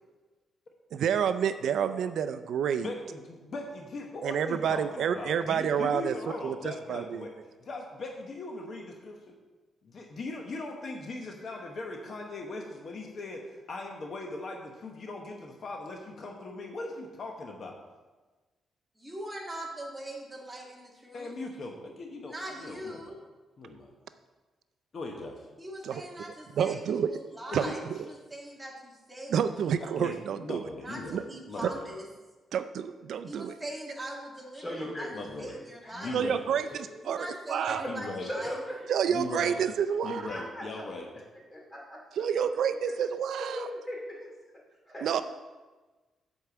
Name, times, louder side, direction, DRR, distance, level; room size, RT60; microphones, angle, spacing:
voice 1, 0.9-2.9 4.2-6.1 6.4-7.2 25.8-26.0 26.6-27.1 27.5-27.6 29.3-30.6 31.1-31.2 31.6-31.7 32.5-33.5 36.1-36.7 37.0-37.8 38.9-40.2 42.2-43.7 45.0-45.2, right 8 dB, 70° right, 11 dB, 0.4 m, -29 dB
voice 2, 2.8-7.3 7.6-9.3 9.8-17.8 21.1-23.2 23.6-23.9 24.9-25.5 27.5-27.7 30.0-31.2 31.5-31.9 35.1-35.6 35.9-36.4 36.7-36.8 37.9-38.3 39.1-39.5 40.0-41.1, left 2 dB, 45° left, 2 dB, 1.0 m, -39 dB
voice 3, 19.0-21.3 22.2-23.2 25.6-26.8 27.1-29.4 29.8-30.0 30.8-32.1 33.3-36.2 37.0-38.6, right 1 dB, 10° right, -2 dB, 1.7 m, -41 dB
voice 4, 34.5-36.1 36.7-36.8 37.1-37.2 37.6-37.9 38.2-38.9 40.2-40.8 41.5-42.0 42.3-42.4 43.4-44.3 44.9-45.0, equal, 20° left, -2 dB, 2.5 m, -39 dB
8.3 x 4.5 x 6.9 m, 1.3 s
cardioid pair, 130°, 0 cm